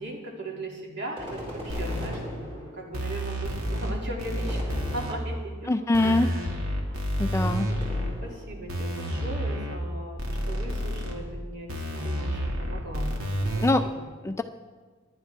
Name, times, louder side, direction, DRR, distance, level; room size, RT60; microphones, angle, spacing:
voice 1, 0.0-4.6 4.9-6.5 6.8-7.8 8.2-13.2 13.5-14.1, right 1 dB, 55° right, -1 dB, 2.5 m, -39 dB
sound 1, 1.2-3.1 4.4-5.6 7.8-8.8, equal, 30° right, 5.1 m, -40 dB
sound 2, 1.7-2.1 2.9-3.9 4.2-5.1 5.9-8.1 8.7-9.8 10.2-11.1 11.7-13.7, equal, 85° right, 2.1 m, -30 dB
voice 2, 5.7-6.3 7.2-7.7 13.6-13.8 14.2-14.4, left 2 dB, 15° left, 8 dB, 0.3 m, -23 dB
19.0 x 11.0 x 3.5 m, 1.4 s
head